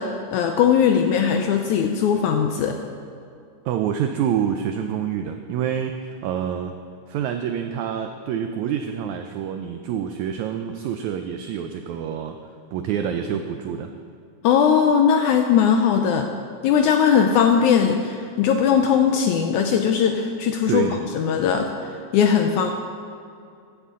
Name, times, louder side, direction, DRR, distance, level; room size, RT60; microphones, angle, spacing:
voice 1, 0.0-2.8 14.4-16.3 16.6-22.7, left 7 dB, 80° left, 5 dB, 1.8 m, -19 dB
voice 2, 3.6-6.7 7.1-12.4 12.7-13.9 20.7-21.0, right 8 dB, 90° right, 6 dB, 1.6 m, -27 dB
15.0 x 9.8 x 3.7 m, 2.4 s
omnidirectional pair, 3.9 m